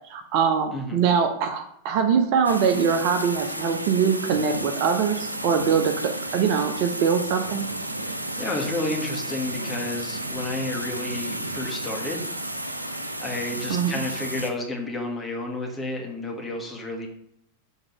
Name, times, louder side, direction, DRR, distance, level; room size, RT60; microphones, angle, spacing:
voice 1, 0.1-7.7 13.7-14.0, right 6 dB, 45° right, 6 dB, 0.6 m, -23 dB
sound 1, 2.4-14.5, right 1 dB, 85° right, 0.5 m, -32 dB
voice 2, 8.4-12.3 13.2-17.1, left 2 dB, 10° left, 0 dB, 1.5 m, -31 dB
6.4 x 3.6 x 4.8 m, 0.74 s
figure-of-eight pair, 90°, 0 cm